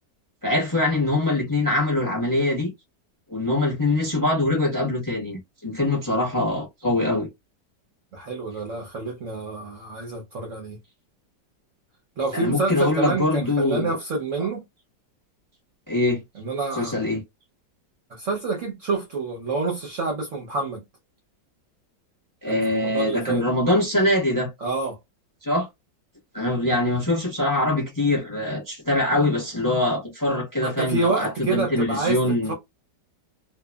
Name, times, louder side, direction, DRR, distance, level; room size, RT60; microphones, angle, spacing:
voice 1, 0.4-2.7 3.3-7.3 12.3-14.0 14.4-14.5 15.9-16.2 16.7-17.2 22.4-24.5 25.4-25.7 26.3-32.5, left 1 dB, 15° left, 0.7 m, -23 dB
voice 2, 8.1-10.8 12.2-14.6 16.4-16.9 18.1-20.8 22.5-23.4 24.6-25.0 30.6-32.2 32.5-32.6, right 3 dB, 60° right, 0.9 m, -28 dB
2.9 x 2.3 x 2.2 m
omnidirectional pair, 1.9 m